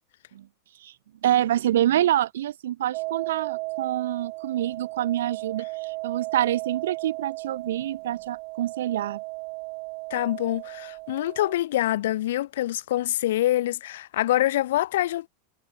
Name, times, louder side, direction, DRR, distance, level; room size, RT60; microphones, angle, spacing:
voice 1, 1.2-9.2, right 12 dB, 90° right, 0.3 m, -26 dB
sound 1, 2.9-11.6, right 29 dB, 45° right, 2.4 m, -35 dB
voice 2, 10.1-15.3, left 14 dB, 75° left, 0.7 m, -25 dB
supercardioid pair, 155°, 0 cm